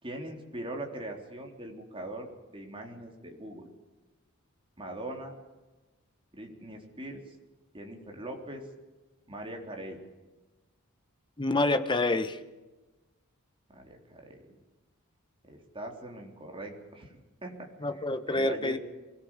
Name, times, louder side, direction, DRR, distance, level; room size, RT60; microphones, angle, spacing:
voice 1, 0.0-3.7 4.8-5.3 6.3-7.3 7.7-8.6 9.3-10.0 13.7-14.4 15.5-18.8, right 1 dB, 25° right, 1 dB, 3.7 m, -41 dB
voice 2, 11.4-12.4 17.8-18.8, left 2 dB, 20° left, 9 dB, 1.3 m, -27 dB
24.0 x 18.0 x 7.4 m, 1.2 s
head